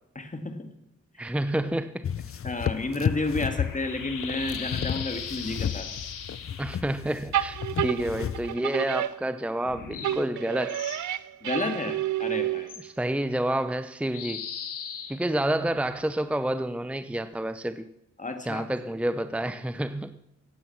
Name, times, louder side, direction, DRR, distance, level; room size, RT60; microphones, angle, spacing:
voice 1, 0.1-0.7 1.1-1.3 2.4-5.9 11.4-12.7 18.2-18.6, left 2 dB, 25° left, 6 dB, 2.3 m, -31 dB
voice 2, 1.2-2.1 6.6-7.6 7.8-10.8 12.8-14.4 15.1-17.9 18.5-20.2, right 1 dB, 5° right, 11 dB, 0.8 m, -29 dB
sound 1, 2.0-8.6, left 8 dB, 45° left, 0.7 m, -32 dB
sound 2, 2.3-6.8 9.6-11.0 12.7-12.8 14.1-16.1, left 7 dB, 85° left, 1.6 m, -39 dB
sound 3, 7.3-9.7 10.0-12.9, right 12 dB, 70° right, 0.7 m, -30 dB
15.5 x 9.2 x 6.0 m, 0.83 s
supercardioid pair, 50°, 31 cm